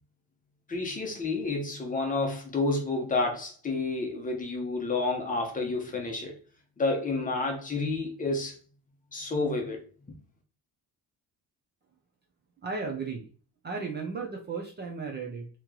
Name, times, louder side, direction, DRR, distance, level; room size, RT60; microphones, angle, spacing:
voice 1, 0.7-6.3 6.8-8.5 9.1-9.8, left 3 dB, 20° left, 0.7 m, -30 dB
voice 2, 12.6-13.3 13.6-15.5, right 4 dB, 25° right, 0.5 m, -35 dB
3.0 x 2.9 x 3.6 m
cardioid pair, 180°, 39 cm